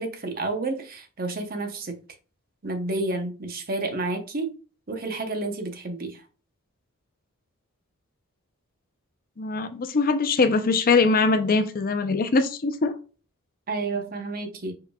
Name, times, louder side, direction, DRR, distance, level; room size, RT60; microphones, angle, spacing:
voice 1, 0.0-2.0 2.6-4.5 4.9-6.2 13.7-14.7, right 2 dB, 45° right, 0.8 m, -30 dB
voice 2, 9.4-12.9, left 4 dB, 40° left, 0.5 m, -22 dB
4.9 x 4.7 x 2.3 m
head